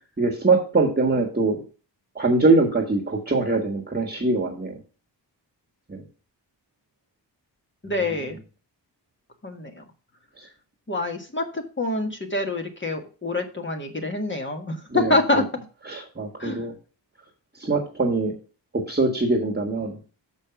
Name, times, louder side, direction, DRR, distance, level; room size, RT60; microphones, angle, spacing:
voice 1, 0.2-1.6 2.1-4.8 5.9-6.0 8.0-8.1 10.4-10.5 14.9-15.4 15.9-16.7 17.6-18.3 18.7-20.0, right 3 dB, 20° right, 1 dB, 1.5 m, -23 dB
voice 2, 7.8-8.4 9.4-9.8 10.9-15.4 16.4-16.6, left 2 dB, 25° left, 3 dB, 1.6 m, -26 dB
6.9 x 5.4 x 5.9 m, 0.37 s
wide cardioid pair, 95°, 44 cm